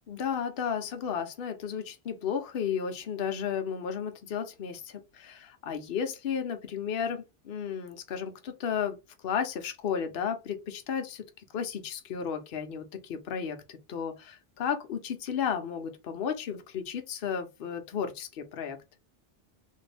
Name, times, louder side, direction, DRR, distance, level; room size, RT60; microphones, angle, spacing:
voice 1, 0.1-9.0 9.2-11.2 11.5-18.8, left 7 dB, 55° left, 0.8 m, -33 dB
3.1 x 2.5 x 3.3 m
omnidirectional pair, 1.2 m